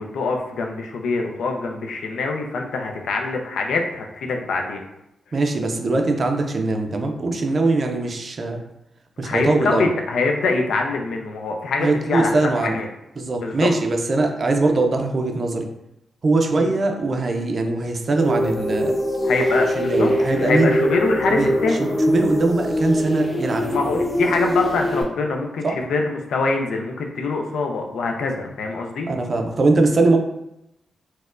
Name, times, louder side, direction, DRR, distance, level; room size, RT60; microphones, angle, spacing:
voice 1, 0.0-4.8 9.2-12.9 13.4-13.7 16.5-16.7 19.2-20.1 20.4-21.8 23.7-29.1, left 3 dB, 85° left, 3 dB, 0.4 m, -24 dB
voice 2, 5.3-8.6 9.2-9.9 11.8-12.8 13.2-15.7 16.2-19.0 19.7-20.8 21.3-21.5 21.8-23.7 25.6-25.7 29.1-30.2, right 2 dB, 40° right, 3 dB, 0.4 m, -21 dB
sound 1, 18.2-25.0, left 1 dB, 20° left, 0.7 m, -22 dB
4.2 x 2.1 x 2.4 m, 0.86 s
wide cardioid pair, 135°, 0 cm